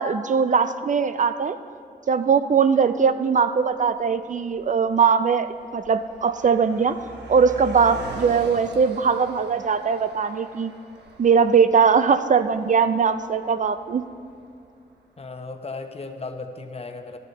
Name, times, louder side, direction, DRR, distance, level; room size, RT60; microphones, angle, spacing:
voice 1, 0.0-1.6 2.1-7.0 7.3-10.7 11.2-14.1, right 6 dB, 45° right, 11 dB, 0.4 m, -20 dB
Car passing by, 2.9-3.0 3.8-4.1 4.3-14.7, right 3 dB, 80° right, 1.0 m, -42 dB
voice 2, 15.2-17.2, left 3 dB, 35° left, 6 dB, 0.9 m, -35 dB
12.0 x 7.2 x 4.0 m, 2.4 s
cardioid pair, 55°, 17 cm